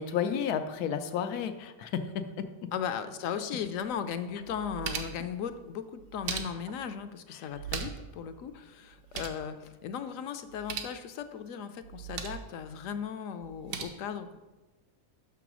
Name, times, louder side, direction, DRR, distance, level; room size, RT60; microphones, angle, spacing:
voice 1, 0.0-2.5, left 7 dB, 90° left, 9 dB, 1.2 m, -32 dB
voice 2, 2.7-14.4, left 7 dB, 70° left, 10 dB, 0.9 m, -37 dB
sound 1, 3.8-3.9 4.4-5.3 6.0-6.8 7.5-8.1 8.4-8.5 8.8-9.4 10.5-11.0 11.8-12.5 13.4-13.8, right 7 dB, 80° right, 1.3 m, -38 dB
6.1 x 6.0 x 6.0 m, 1.1 s
omnidirectional pair, 1.6 m